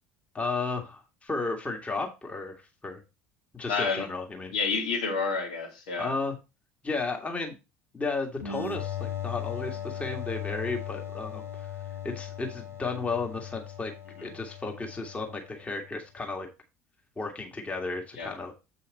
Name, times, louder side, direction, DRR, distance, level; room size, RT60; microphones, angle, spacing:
voice 1, 0.3-2.6 2.8-3.0 3.5-4.5 6.0-6.4 6.8-7.6 7.9-11.7 12.0-13.9 14.2-16.5 17.2-18.5, left 3 dB, 20° left, 1.9 m, -33 dB
voice 2, 3.7-4.0 4.5-6.1 14.2-14.3 18.2-18.3, left 4 dB, 65° left, 2.6 m, -29 dB
sound 1, 8.4-15.9, left 9 dB, 90° left, 1.4 m, -38 dB
7.9 x 5.7 x 4.1 m
figure-of-eight pair, 65°, 7 cm